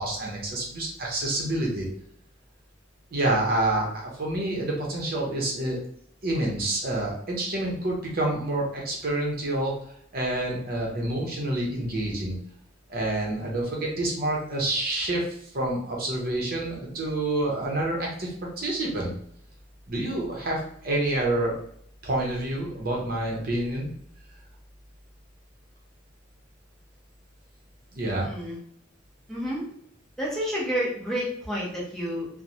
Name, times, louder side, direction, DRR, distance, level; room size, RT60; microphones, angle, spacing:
voice 1, 0.0-1.9 3.1-5.8 6.2-9.7 10.1-12.4 12.9-15.2 15.5-19.1 19.9-21.5 22.0-23.9 27.9-28.3, right 1 dB, 50° right, -1 dB, 0.7 m, -28 dB
voice 2, 28.2-28.6 29.3-29.6 30.2-32.3, equal, ahead, -6 dB, 0.8 m, -30 dB
3.0 x 2.1 x 2.6 m, 0.67 s
head